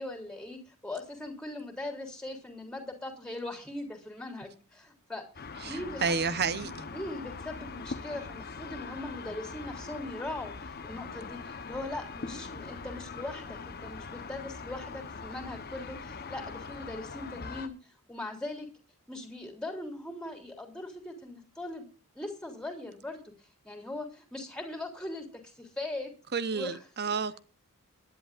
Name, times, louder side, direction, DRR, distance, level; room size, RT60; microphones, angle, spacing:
voice 1, 0.0-5.2 5.6-6.3 6.6-17.7 18.1-18.7 19.1-21.9 22.1-23.2 23.6-26.1 26.5-26.8, left 2 dB, 5° left, 3 dB, 3.3 m, -40 dB
sound 1, 5.4-17.7, left 4 dB, 45° left, 1.1 m, -42 dB
voice 2, 5.6-6.9 26.3-27.4, right 5 dB, 50° right, 14 dB, 0.9 m, -31 dB
23.5 x 10.5 x 2.6 m, 0.35 s
head